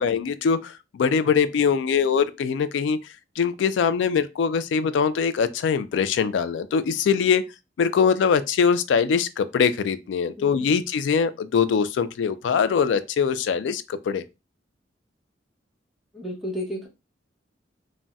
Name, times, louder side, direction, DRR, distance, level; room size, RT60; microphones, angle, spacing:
voice 1, 0.0-3.0 3.4-7.4 7.8-14.2, left 6 dB, 75° left, 0.3 m, -22 dB
voice 2, 10.4-10.7 16.1-16.9, equal, ahead, 0.8 m, -33 dB
3.9 x 2.1 x 2.3 m
head